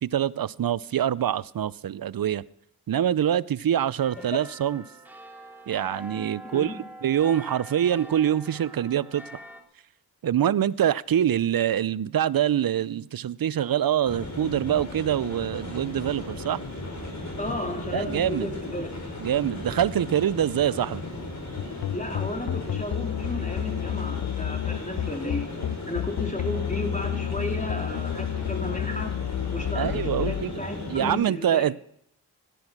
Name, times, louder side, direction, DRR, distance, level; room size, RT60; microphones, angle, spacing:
voice 1, 0.0-2.4 2.9-4.8 5.7-6.7 7.0-9.4 10.2-16.6 17.9-18.5 19.2-21.0 29.8-30.5 30.9-31.8, right 10 dB, 60° right, 0.6 m, -25 dB
sound 1, 4.0-9.6, right 1 dB, 5° right, 3.8 m, -44 dB
voice 2, 6.4-6.8 17.4-19.2 21.9-25.5 25.9-29.1 29.5-31.6, left 1 dB, 20° left, 3.8 m, -33 dB
sound 2, 14.1-31.1, left 2 dB, 45° left, 5.7 m, -36 dB
sound 3, 21.6-30.4, left 11 dB, 65° left, 0.6 m, -30 dB
17.0 x 11.5 x 6.1 m
cardioid pair, 45°, 40 cm